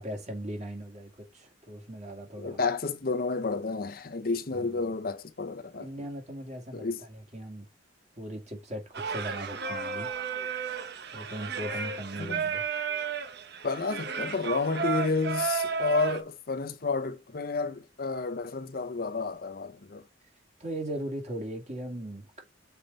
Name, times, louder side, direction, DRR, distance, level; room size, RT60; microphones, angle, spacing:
voice 1, 0.0-2.6 4.5-5.0 5.8-7.7 8.2-10.1 11.1-12.6 20.6-22.4, right 1 dB, 35° right, 2.4 m, -39 dB
voice 2, 2.4-5.9 6.7-7.0 12.2-12.5 13.6-20.0, left 4 dB, 50° left, 0.8 m, -31 dB
Singing, 8.9-16.2, right 5 dB, 55° right, 1.0 m, -33 dB
6.8 x 4.7 x 4.1 m
head